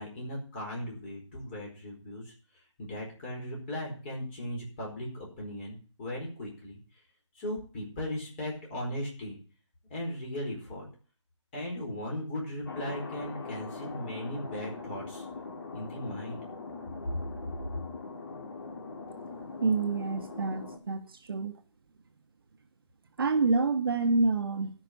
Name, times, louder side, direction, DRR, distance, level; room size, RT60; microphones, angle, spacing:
voice 1, 0.0-2.3 2.8-6.8 7.3-9.4 9.9-10.8 11.5-15.2 15.7-16.4 17.1-17.2, left 1 dB, 20° left, -2 dB, 4.6 m, -37 dB
Thunder, 12.7-20.8, left 4 dB, 50° left, 2.2 m, -42 dB
voice 2, 19.6-21.5 23.2-24.7, right 3 dB, 50° right, 6 dB, 1.2 m, -27 dB
12.5 x 5.9 x 8.4 m, 0.39 s
hypercardioid pair, 165°, 16 cm